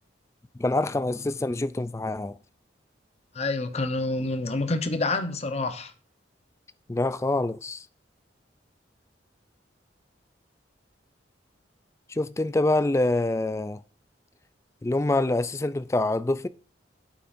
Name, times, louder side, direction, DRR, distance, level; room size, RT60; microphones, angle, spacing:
voice 1, 0.5-2.4 6.9-7.9 12.1-13.8 14.8-16.5, left 2 dB, 15° left, 0.3 m, -26 dB
voice 2, 3.3-5.9, left 2 dB, 35° left, 0.9 m, -27 dB
9.1 x 8.1 x 2.6 m
head